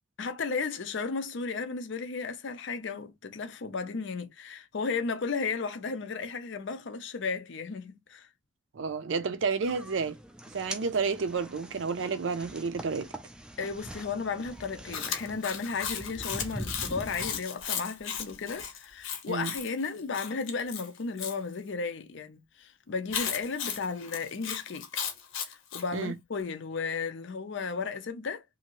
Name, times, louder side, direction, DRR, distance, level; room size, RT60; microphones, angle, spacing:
voice 1, 0.2-8.3 13.6-24.9 25.5-28.4, left 4 dB, 60° left, 0.5 m, -34 dB
voice 2, 8.7-10.2 10.5-13.1 19.3-19.5 25.9-26.1, right 5 dB, 65° right, 0.5 m, -30 dB
sound 1, 9.6-17.4, right 1 dB, 5° right, 0.3 m, -43 dB
Chewing mastication, 14.9-21.4 23.1-25.9, left 7 dB, 75° left, 0.9 m, -36 dB
2.8 x 2.5 x 2.9 m
head